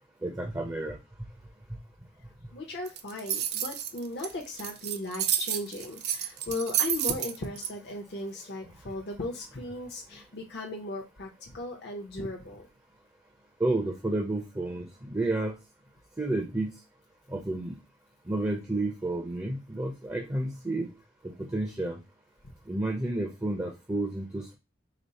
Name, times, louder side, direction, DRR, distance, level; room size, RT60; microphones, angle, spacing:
voice 1, 0.2-1.0 13.6-15.5 16.2-16.7 17.3-17.8 18.3-20.9 21.4-22.0 22.7-24.6, right 2 dB, 15° right, 1 dB, 0.6 m, -30 dB
voice 2, 2.5-12.7, left 2 dB, 60° left, 0 dB, 0.7 m, -37 dB
sound 1, 2.9-7.7, right 10 dB, 60° right, 0.5 m, -30 dB
5.0 x 2.0 x 4.1 m, 0.25 s
head